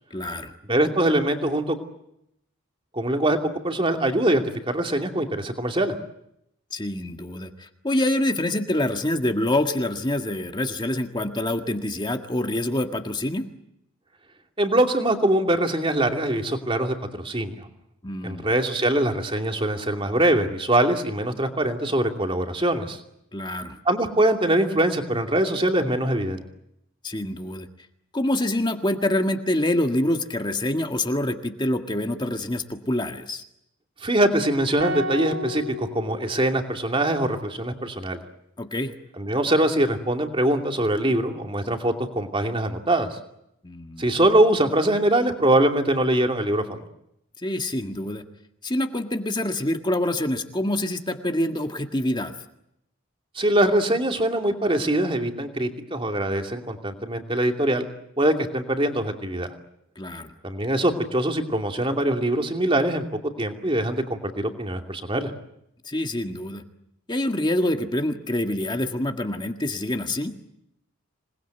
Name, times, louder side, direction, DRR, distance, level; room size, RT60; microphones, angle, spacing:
voice 1, 0.1-0.5 6.7-13.5 18.0-18.5 23.3-23.8 27.0-27.7 28.1-33.4 38.6-38.9 43.6-44.2 47.4-48.2 48.6-52.3 59.9-60.3 65.8-66.6 67.1-70.3, left 1 dB, 20° left, 5 dB, 1.8 m, -26 dB
voice 2, 0.7-1.8 2.9-3.4 3.6-5.9 14.6-17.7 18.2-23.0 23.9-26.4 34.0-38.2 39.2-43.2 44.0-46.8 53.3-57.8 58.2-59.5 60.4-63.0 63.4-65.3, right 1 dB, 25° right, 4 dB, 2.7 m, -23 dB
sound 1, 34.8-37.1, left 1 dB, 85° right, 3.0 m, -33 dB
27.0 x 20.5 x 9.2 m, 0.79 s
head